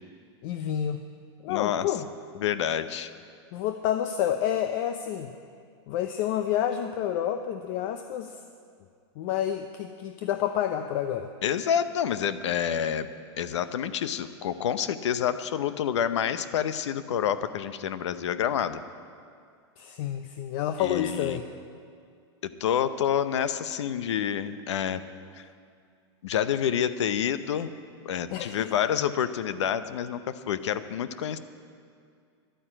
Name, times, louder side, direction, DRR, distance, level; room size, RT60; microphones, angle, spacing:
voice 1, 0.4-1.0 1.4-2.1 3.5-5.3 5.9-8.4 9.2-11.3 19.8-21.5 28.3-28.7, left 10 dB, 50° left, 8 dB, 0.7 m, -29 dB
voice 2, 1.5-1.9 2.4-3.1 11.4-13.1 13.4-18.8 20.8-21.4 22.6-25.0 25.4-25.5 26.2-27.7 28.0-31.4, left 9 dB, 85° left, 13 dB, 0.8 m, -28 dB
11.5 x 9.5 x 8.8 m, 2.3 s
supercardioid pair, 135°, 14 cm